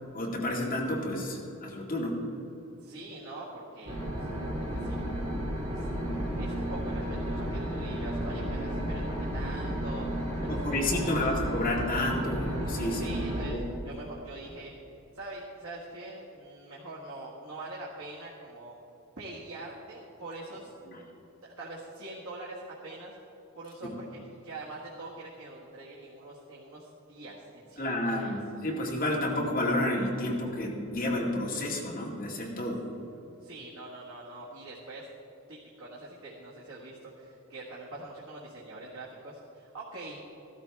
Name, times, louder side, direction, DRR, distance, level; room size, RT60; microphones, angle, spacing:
voice 1, 0.1-2.2 10.5-13.1 13.5-13.7 23.8-23.9 27.8-32.8, left 1 dB, 40° left, -3 dB, 2.0 m, -30 dB
voice 2, 2.8-5.0 5.7-5.9 6.1-10.1 10.4-11.3 12.9-14.7 15.1-18.8 19.2-20.7 21.4-23.1 23.6-28.4 33.4-35.1 35.5-40.2, right 2 dB, 85° right, -6 dB, 1.7 m, -44 dB
sound 1, 3.9-13.5, equal, 30° right, 2.6 m, -33 dB
15.0 x 12.5 x 3.5 m, 2.9 s
head